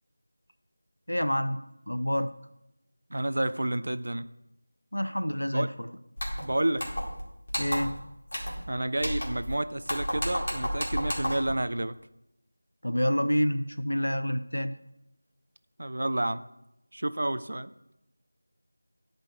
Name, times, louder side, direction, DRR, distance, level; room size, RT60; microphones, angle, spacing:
voice 1, 1.1-1.6 1.9-2.3 4.9-5.9 7.5-8.0 12.8-14.7, equal, 80° left, 10 dB, 0.6 m, -28 dB
voice 2, 3.1-4.3 5.5-5.7 6.4-6.9 8.7-11.9 15.8-16.4 16.9-17.7, right 1 dB, 55° right, 14 dB, 0.4 m, -30 dB
sound 1, 6.2-6.4 6.8-7.2 7.5-8.0 8.3-8.6 9.0-9.5 9.8-11.5, equal, 55° left, 2.1 m, -32 dB
10.0 x 5.1 x 3.5 m, 0.86 s
figure-of-eight pair, 170°, 0 cm